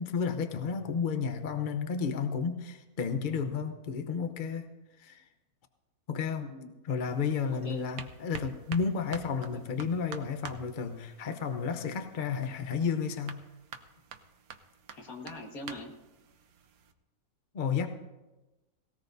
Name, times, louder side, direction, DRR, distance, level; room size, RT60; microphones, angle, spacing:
voice 1, 0.0-4.7 5.0-5.3 6.1-6.5 6.8-13.4 17.5-17.9, left 6 dB, 40° left, 7 dB, 0.8 m, -32 dB
voice 2, 6.4-6.7 7.6-7.9 9.5-9.6 14.9-15.9, left 2 dB, 65° left, 1 dB, 2.1 m, -42 dB
sound 1, 7.1-16.9, right 6 dB, 75° right, 1.3 m, -48 dB
18.5 x 18.0 x 2.7 m, 1.1 s
omnidirectional pair, 1.6 m